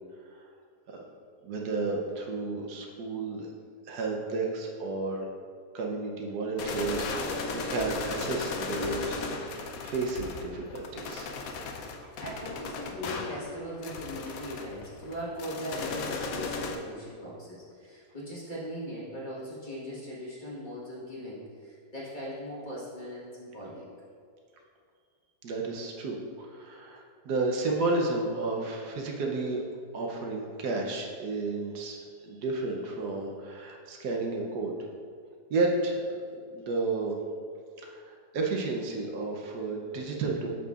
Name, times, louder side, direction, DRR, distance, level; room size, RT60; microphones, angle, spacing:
voice 1, 1.4-3.5 3.9-5.3 5.7-9.2 9.8-11.3 25.4-29.6 29.9-34.7 35.5-36.0 36.5-37.2 37.8-40.5, right 3 dB, 75° right, 0 dB, 1.3 m, -32 dB
sound 1, 6.6-16.8, left 3 dB, 70° left, 1.0 m, -36 dB
voice 2, 11.9-23.9, equal, 30° left, -7 dB, 1.5 m, -39 dB
8.4 x 6.6 x 2.4 m, 2.1 s
omnidirectional pair, 1.8 m